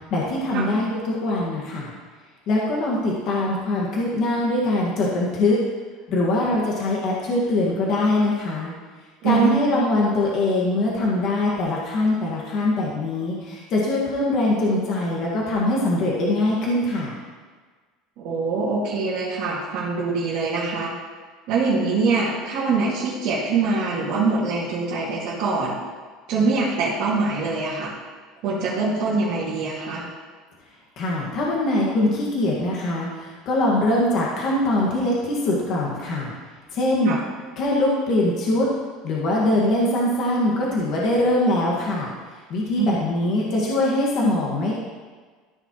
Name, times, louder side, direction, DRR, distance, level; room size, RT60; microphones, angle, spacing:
voice 1, 0.1-1.9 2.5-5.6 6.1-8.7 9.2-17.2 31.0-36.3 36.7-37.2 37.6-38.7 39.0-42.1 42.5-44.7, left 1 dB, 45° left, -4 dB, 1.8 m, -22 dB
voice 2, 9.2-9.6 18.2-20.9 21.5-25.7 26.3-27.9 28.4-30.0 37.0-37.2 42.8-42.9, right 4 dB, 60° right, -9 dB, 2.4 m, -23 dB
14.0 x 5.6 x 3.1 m, 1.5 s
cardioid pair, 145°, 0 cm